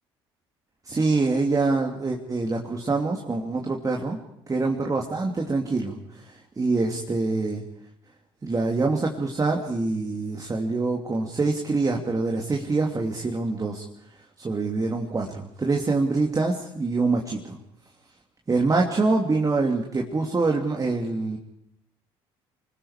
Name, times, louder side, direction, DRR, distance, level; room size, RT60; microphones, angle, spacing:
voice 1, 0.9-4.2 4.5-6.0 6.6-7.6 8.4-13.8 14.4-17.6 18.5-21.4, right 3 dB, 25° right, 0 dB, 2.9 m, -25 dB
28.0 x 19.5 x 5.1 m, 0.77 s
hypercardioid pair, 60°, 13 cm